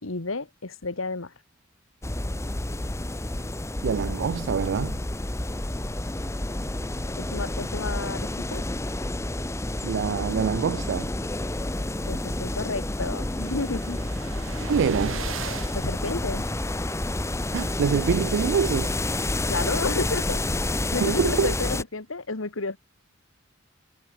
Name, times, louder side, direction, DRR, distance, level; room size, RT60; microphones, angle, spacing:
voice 1, 0.0-1.3 7.2-8.6 12.1-14.0 15.7-16.5 19.5-20.6 20.9-22.8, left 3 dB, 80° left, 1.8 m, -31 dB
sound 1, 2.0-21.8, left 1 dB, 15° left, 0.8 m, -29 dB
voice 2, 3.8-5.0 9.8-11.1 14.7-15.2 17.5-19.0 21.0-21.5, right 6 dB, 60° right, 0.3 m, -25 dB
sound 2, 12.1-16.9, right 7 dB, 80° right, 1.9 m, -41 dB
head